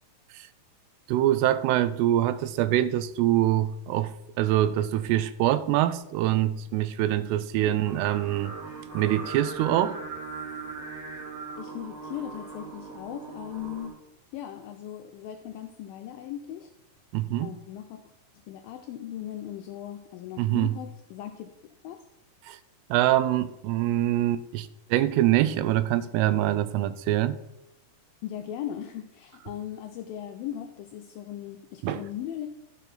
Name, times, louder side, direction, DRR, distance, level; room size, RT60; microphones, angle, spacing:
voice 1, 1.1-8.6 8.9-10.0 17.1-17.6 20.4-20.7 22.4-22.6 22.9-27.4 31.8-32.0, right 13 dB, 85° right, 2.6 m, -24 dB
Singing, 7.8-13.9, right 4 dB, 35° right, 2.3 m, -39 dB
voice 2, 11.6-13.9 14.3-16.7 17.4-18.0 18.5-21.5 21.8-22.0 28.2-32.5, left 11 dB, 90° left, 2.0 m, -38 dB
13.0 x 5.5 x 3.9 m
omnidirectional pair, 4.7 m